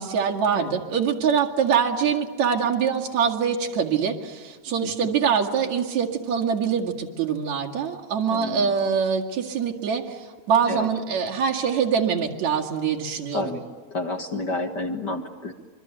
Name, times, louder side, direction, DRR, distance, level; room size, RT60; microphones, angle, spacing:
voice 1, 0.0-10.2 10.5-13.5, right 7 dB, 70° right, -1 dB, 3.4 m, -24 dB
voice 2, 8.3-8.7 10.7-10.9 13.3-13.6 13.9-15.5, left 2 dB, 45° left, 4 dB, 1.8 m, -30 dB
26.0 x 24.0 x 9.1 m, 1.4 s
omnidirectional pair, 3.3 m